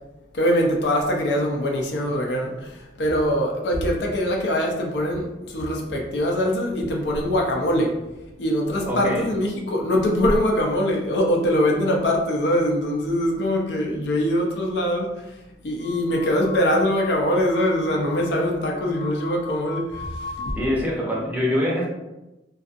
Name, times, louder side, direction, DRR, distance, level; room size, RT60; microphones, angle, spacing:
voice 1, 0.3-8.0 8.4-15.4 15.6-20.6, equal, 70° left, 0 dB, 0.5 m, -23 dB
voice 2, 8.9-9.2 20.6-21.9, left 1 dB, 10° right, -4 dB, 0.6 m, -24 dB
sound 1, 15.8-20.6, left 4 dB, 35° left, 0.8 m, -38 dB
2.5 x 2.3 x 2.4 m, 0.99 s
head